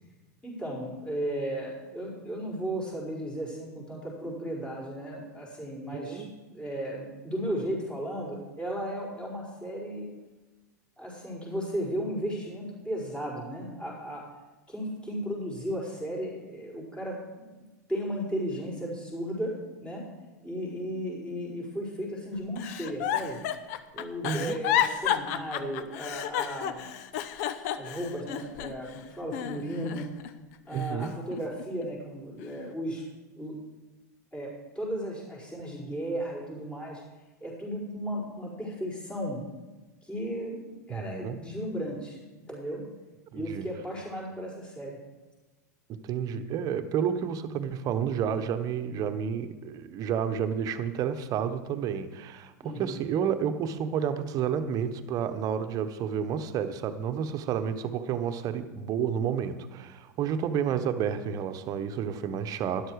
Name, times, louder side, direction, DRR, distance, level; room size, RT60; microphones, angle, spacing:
voice 1, 0.4-10.1 11.0-14.2 14.7-17.6 17.9-19.5 19.8-20.0 20.4-23.4 23.9-26.9 27.7-30.1 30.6-33.0 33.3-33.6 34.3-37.0 37.4-39.4 40.0-42.2 42.5-42.8 43.3-45.0 52.6-53.0, equal, 10° left, -5 dB, 5.0 m, -35 dB
voice 2, 5.9-6.3 24.2-24.6 30.7-31.1 40.9-41.4 43.3-43.7 45.9-62.9, right 8 dB, 40° right, 9 dB, 1.1 m, -30 dB
Giggle, 22.6-28.9 29.3-30.3 30.7-31.9 32.4-32.7, left 11 dB, 60° left, 0.8 m, -31 dB
12.5 x 11.0 x 4.8 m, 1.2 s
hypercardioid pair, 95°, 10 cm